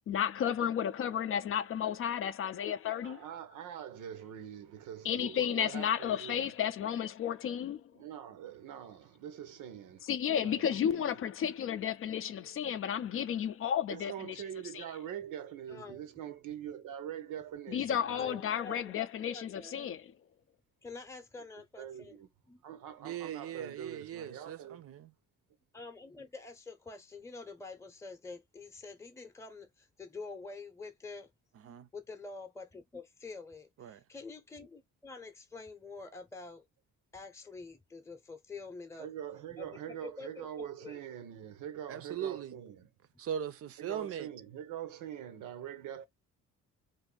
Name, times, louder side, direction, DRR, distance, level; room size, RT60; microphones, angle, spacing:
voice 1, 0.1-3.2 5.0-7.8 10.0-14.4 14.7-14.9 17.7-20.0, left 9 dB, 45° left, 0.4 m, -32 dB
voice 2, 3.0-6.5 8.0-10.0 10.4-11.1 13.9-18.4 21.8-22.3 22.6-24.8 39.0-42.9 43.8-46.1, right 10 dB, 85° right, 0.7 m, -44 dB
voice 3, 15.7-16.1 17.8-17.9 18.2-18.9 19.2-19.8 20.8-22.2 22.5-22.6 25.7-31.3 31.9-36.6 37.1-39.1 39.6-41.0, left 3 dB, 10° left, 0.7 m, -47 dB
voice 4, 23.0-25.1 31.6-31.9 33.8-34.0 41.9-42.6 43.2-44.3, right 9 dB, 50° right, 0.5 m, -39 dB
2.6 x 2.5 x 3.7 m
cardioid pair, 90°, 30 cm